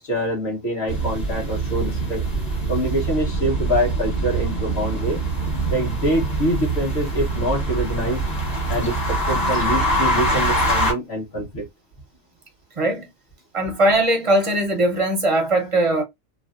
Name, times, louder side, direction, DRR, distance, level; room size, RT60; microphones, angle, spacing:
voice 1, 0.0-2.2 2.7-5.2 5.7-8.2 8.7-11.6, equal, 50° left, 1.5 m, -25 dB
sound 1, 0.9-10.9, right 1 dB, 35° left, 1.0 m, -24 dB
voice 2, 12.8-13.1 13.5-16.0, right 1 dB, 35° right, 0.5 m, -20 dB
3.1 x 2.4 x 2.4 m
omnidirectional pair, 1.4 m